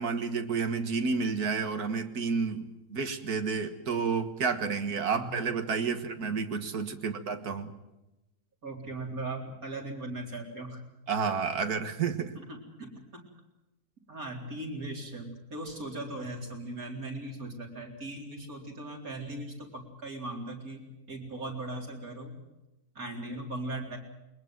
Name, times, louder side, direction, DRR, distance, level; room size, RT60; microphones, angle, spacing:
voice 1, 0.0-7.7 11.1-12.3, right 5 dB, 85° right, 8 dB, 2.1 m, -30 dB
voice 2, 8.6-10.8 12.3-13.2 14.1-22.4 22.9-24.0, right 2 dB, 70° right, 0 dB, 4.6 m, -39 dB
22.0 x 20.5 x 7.6 m, 0.99 s
omnidirectional pair, 1.6 m